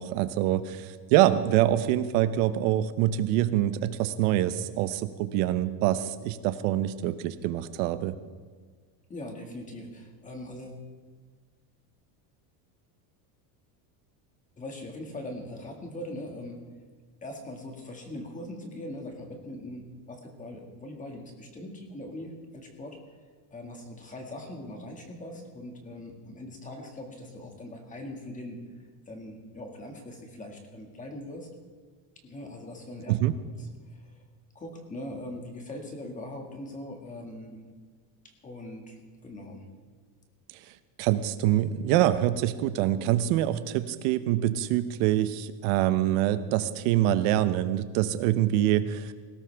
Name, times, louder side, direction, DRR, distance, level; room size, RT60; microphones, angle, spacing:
voice 1, 0.0-8.2 33.1-33.3 41.0-49.1, right 13 dB, 70° right, 12 dB, 0.9 m, -25 dB
voice 2, 9.1-10.8 14.6-16.6 17.2-23.0 23.5-28.6 29.1-31.5 32.2-33.1 33.6-34.2 34.6-37.6 38.2-39.7, left 1 dB, 15° left, 3 dB, 1.9 m, -41 dB
19.5 x 16.5 x 3.4 m, 1.5 s
cardioid pair, 170°, 49 cm